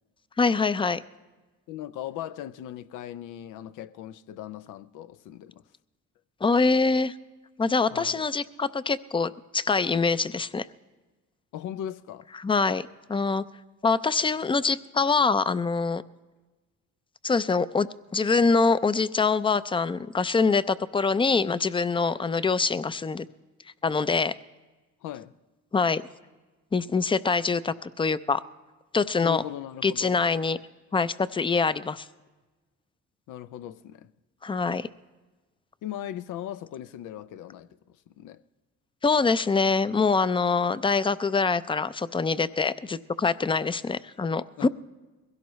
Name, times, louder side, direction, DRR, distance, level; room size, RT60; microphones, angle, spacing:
voice 1, 0.4-1.0 6.4-7.1 7.6-10.7 12.4-13.4 13.8-16.0 17.2-23.3 23.8-24.3 25.7-26.0 26.7-28.4 28.9-29.4 29.8-30.6 30.9-32.1 34.4-34.9 39.0-44.7, left 4 dB, 15° left, 0.4 m, -24 dB
voice 2, 1.7-5.6 7.9-8.2 11.5-12.3 25.0-25.3 29.2-30.2 33.3-34.1 35.8-38.4 44.6-44.7, left 11 dB, 90° left, 0.6 m, -38 dB
22.0 x 16.5 x 3.1 m
cardioid pair, 90°, 30 cm